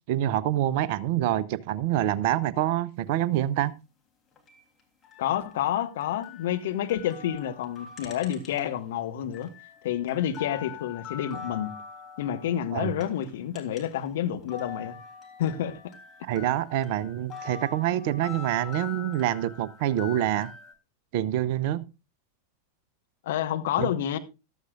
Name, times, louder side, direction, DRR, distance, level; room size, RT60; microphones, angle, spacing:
voice 1, 0.1-3.7 12.7-12.9 16.2-20.5 21.1-21.8 23.8-23.9, right 12 dB, 50° right, 0.8 m, -26 dB
sound 1, 4.3-8.9 9.2-14.1 14.3-20.7, left 7 dB, 20° left, 3.3 m, -44 dB
voice 2, 5.2-9.5 9.8-11.7 12.2-15.0 15.4-15.9 23.2-24.2, left 10 dB, 55° left, 1.3 m, -29 dB
14.5 x 13.0 x 2.5 m
figure-of-eight pair, 90°, 0 cm